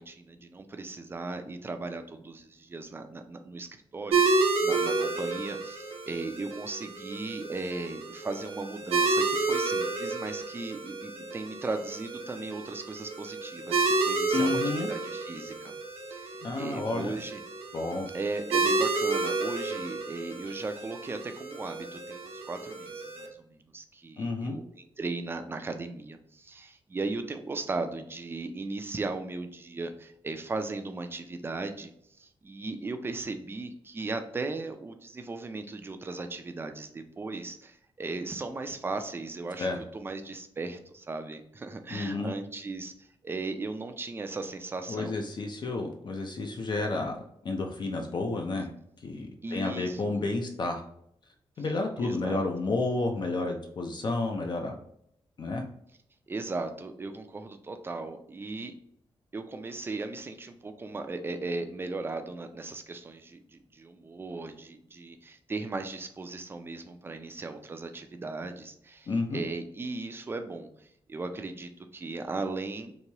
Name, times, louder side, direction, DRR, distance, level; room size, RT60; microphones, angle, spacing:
voice 1, 0.0-15.7 16.1-17.4 18.1-31.9 32.2-45.2 49.4-50.2 52.0-52.5 56.3-58.7 59.3-72.9, right 3 dB, 25° right, 7 dB, 0.3 m, -37 dB
sound 1, 4.1-23.3, right 3 dB, 85° right, 0.6 m, -30 dB
voice 2, 14.3-14.9 16.4-17.2 17.7-18.1 24.2-24.6 39.6-39.8 41.9-42.3 44.9-48.7 49.0-50.8 51.6-54.7 55.4-55.6 69.1-69.4, left 3 dB, 50° left, 3 dB, 0.4 m, -31 dB
3.0 x 2.2 x 2.8 m, 0.71 s
wide cardioid pair, 125°, 10 cm